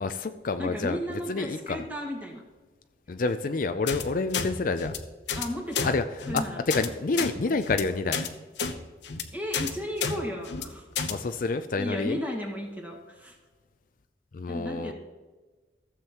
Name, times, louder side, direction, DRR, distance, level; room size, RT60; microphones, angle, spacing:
voice 1, 0.0-1.8 3.1-4.9 5.8-6.4 6.7-8.2 11.1-12.2 14.3-14.9, left 3 dB, 50° left, 9 dB, 0.4 m, -28 dB
voice 2, 0.6-2.4 5.4-6.0 6.3-6.8 9.3-10.9 11.8-13.4 14.5-14.9, equal, 10° right, 0 dB, 1.8 m, -34 dB
sound 1, 3.9-4.0 4.3-4.5 4.8-5.0 5.3-5.5 5.7-5.9 6.2-6.4 6.7-6.9 7.1-7.3 7.6-7.8 8.1-8.3 8.6-8.7 9.0-9.2 9.5-9.7 10.0-10.1 10.5-10.6 11.0-11.1, left 6 dB, 90° left, 0.8 m, -30 dB
15.0 x 7.4 x 3.0 m, 1.3 s
head